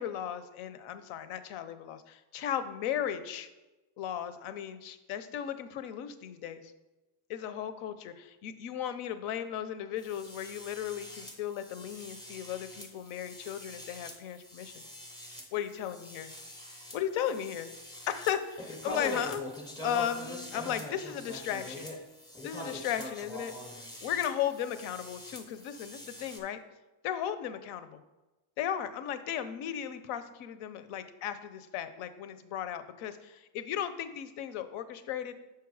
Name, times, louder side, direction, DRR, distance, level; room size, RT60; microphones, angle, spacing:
voice 1, 0.0-3.5 4.0-6.6 7.3-14.8 15.5-16.3 16.9-17.7 18.1-19.4 19.8-21.9 22.4-23.5 24.0-26.6 27.0-28.0 28.6-35.3, left 10 dB, 80° left, 11 dB, 0.7 m, -36 dB
sound 1, 10.0-26.4, left 1 dB, 10° left, 0.5 m, -44 dB
6.6 x 4.7 x 4.7 m, 1.1 s
cardioid pair, 175°, 48 cm